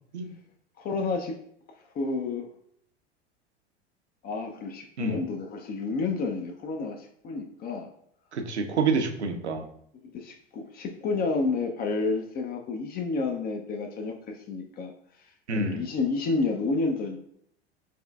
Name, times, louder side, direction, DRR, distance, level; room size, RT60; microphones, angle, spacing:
voice 1, 0.8-1.4 1.8-2.5 4.2-7.9 10.0-14.9 15.2-17.2, left 3 dB, 30° left, 4 dB, 0.5 m, -30 dB
voice 2, 8.3-9.7 15.5-15.8, right 4 dB, 80° right, 5 dB, 0.7 m, -27 dB
5.9 x 3.1 x 2.3 m, 0.68 s
figure-of-eight pair, 80°, 34 cm